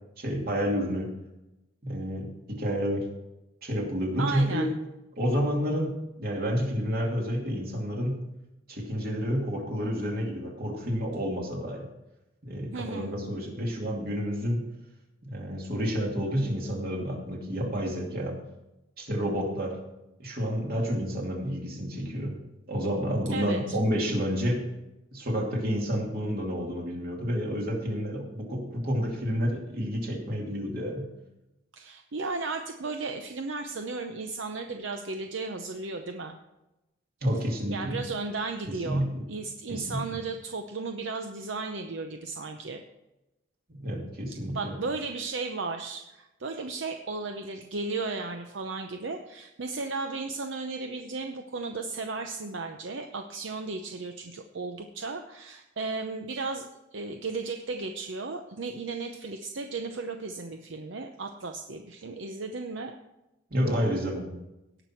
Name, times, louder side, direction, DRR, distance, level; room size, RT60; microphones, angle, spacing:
voice 1, 0.2-1.1 1.8-3.1 3.6-4.7 5.2-8.2 8.7-11.9 12.4-14.6 15.2-18.4 19.0-19.8 20.2-22.4 22.7-24.6 25.1-31.1 37.2-38.0 38.7-39.2 39.7-40.0 43.8-44.7 63.5-64.4, equal, 55° right, -1 dB, 2.7 m, -29 dB
voice 2, 4.2-4.7 12.7-13.1 23.3-23.8 31.7-36.4 37.7-42.8 44.3-62.9, right 3 dB, 75° right, 5 dB, 0.7 m, -35 dB
17.5 x 6.0 x 4.5 m, 0.96 s
head